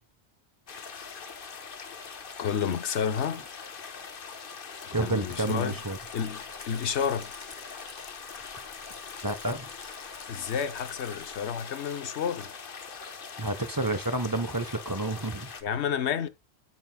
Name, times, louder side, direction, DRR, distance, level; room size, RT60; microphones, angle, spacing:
sound 1, 0.7-15.6, left 5 dB, 55° left, 1.1 m, -42 dB
voice 1, 2.4-3.4 4.8-5.8 6.1-7.3 10.3-12.5 15.6-16.3, left 7 dB, 90° left, 1.1 m, -30 dB
voice 2, 4.9-6.0 9.2-9.7 13.4-15.5, right 2 dB, 20° right, 0.9 m, -30 dB
Rattle, 5.3-11.5, left 3 dB, 30° left, 1.0 m, -51 dB
9.3 x 8.0 x 2.2 m
omnidirectional pair, 1.1 m